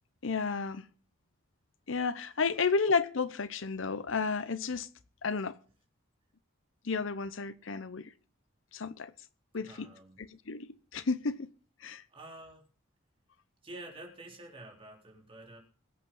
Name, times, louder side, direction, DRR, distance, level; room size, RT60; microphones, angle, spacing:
voice 1, 0.2-0.8 1.9-4.9 5.2-5.6 6.8-8.1 8.7-9.1 9.5-9.9 10.2-11.5 11.8-12.0, left 4 dB, 75° left, 0.8 m, -32 dB
voice 2, 9.7-10.2 12.1-12.6 13.6-15.6, right 1 dB, 25° right, 3.8 m, -48 dB
22.0 x 8.5 x 3.9 m
head